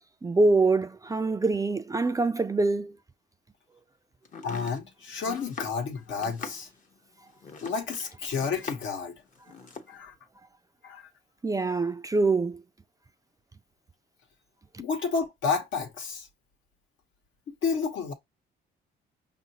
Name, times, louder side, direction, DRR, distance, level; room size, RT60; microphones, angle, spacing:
voice 1, 0.2-2.9 11.4-12.6, right 3 dB, 15° right, 0.4 m, -24 dB
Domestic sounds home sounds, 4.2-9.0 9.3-9.9, left 5 dB, 40° left, 0.8 m, -43 dB
voice 2, 4.4-6.7 7.6-9.2 9.9-10.1 10.8-11.1 14.8-16.3 17.5-18.1, left 5 dB, 75° left, 1.1 m, -31 dB
5.4 x 2.6 x 2.8 m
cardioid pair, 90°, 20 cm